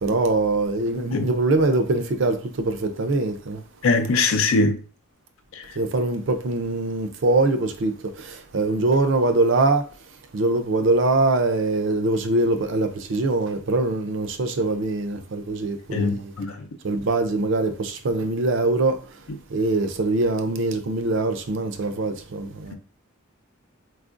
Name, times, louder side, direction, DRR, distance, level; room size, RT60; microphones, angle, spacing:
voice 1, 0.0-3.6 5.8-9.8 10.3-16.3 16.8-19.0 19.5-22.7, right 2 dB, 60° right, 0.5 m, -23 dB
voice 2, 3.8-4.8 15.9-16.5, left 3 dB, 75° left, 0.5 m, -21 dB
4.4 x 2.4 x 2.5 m
head